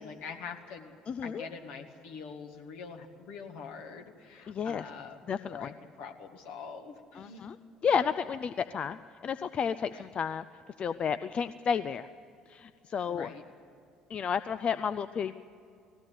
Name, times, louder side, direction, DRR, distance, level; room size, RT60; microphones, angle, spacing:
voice 1, 0.0-7.4 9.9-10.1 13.1-13.4, left 5 dB, 65° left, 3 dB, 1.9 m, -44 dB
voice 2, 1.1-1.4 4.5-4.8 5.3-5.7 7.2-7.5 7.8-10.5 10.8-12.1 12.5-13.3 14.1-15.4, left 7 dB, 40° left, 13 dB, 0.5 m, -31 dB
19.5 x 16.0 x 9.6 m, 2.5 s
figure-of-eight pair, 55°, 3 cm